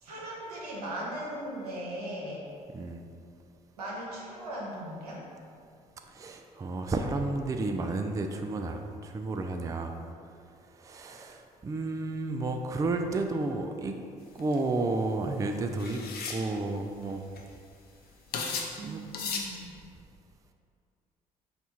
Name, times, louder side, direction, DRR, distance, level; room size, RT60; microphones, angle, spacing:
voice 1, 0.0-2.5 3.8-5.2 18.8-19.6, right 1 dB, 85° right, -5 dB, 0.8 m, -38 dB
voice 2, 6.2-9.9 10.8-13.9 14.4-16.0 16.3-17.2 18.8-19.0, right 2 dB, 15° right, 5 dB, 0.3 m, -31 dB
sound 1, 14.4-14.6 15.8-16.4 17.1-17.2 17.4-17.7 18.3-18.8 19.1-19.5, left 5 dB, 55° left, 0.6 m, -34 dB
4.3 x 2.4 x 4.2 m, 2.3 s
hypercardioid pair, 50°, 19 cm